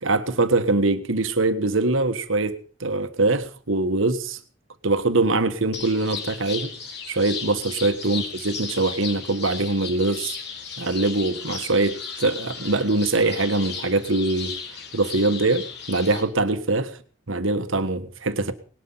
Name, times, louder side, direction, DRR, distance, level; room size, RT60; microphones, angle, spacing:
voice 1, 0.0-4.4 4.8-6.7 7.1-10.4 10.8-14.6 14.9-16.9 17.3-18.5, right 2 dB, 85° right, 1.6 m, -23 dB
sound 1, 5.7-16.2, left 6 dB, 55° left, 3.8 m, -35 dB
19.5 x 12.5 x 5.7 m
head